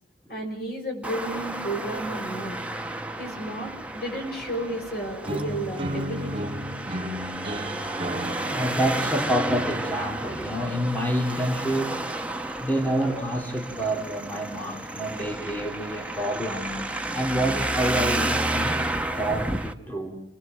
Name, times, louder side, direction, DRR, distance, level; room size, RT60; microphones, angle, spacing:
voice 1, 0.3-2.6 3.2-6.5, right 1 dB, 55° left, 2 dB, 6.3 m, -32 dB
Traffic noise roadway noise, 1.0-19.7, right 1 dB, 5° right, 1.0 m, -31 dB
sound 1, 5.3-11.2, equal, 30° right, 2.0 m, -34 dB
voice 2, 8.5-12.0 12.6-16.8 17.1-18.8 19.2-20.2, right 1 dB, 10° left, 1 dB, 3.0 m, -28 dB
28.5 x 20.0 x 7.6 m, 0.73 s
head